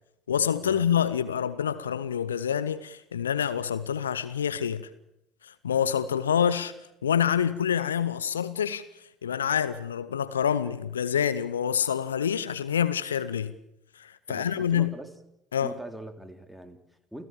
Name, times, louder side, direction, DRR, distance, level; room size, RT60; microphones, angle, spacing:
voice 1, 0.3-4.9 5.4-6.7 7.0-8.8 9.2-13.5 14.0-14.9 15.5-15.8, left 8 dB, 80° left, 0.8 m, -27 dB
voice 2, 14.3-15.1 15.6-17.3, right 1 dB, ahead, 3.1 m, -42 dB
28.5 x 16.0 x 7.1 m
figure-of-eight pair, 60°, 0 cm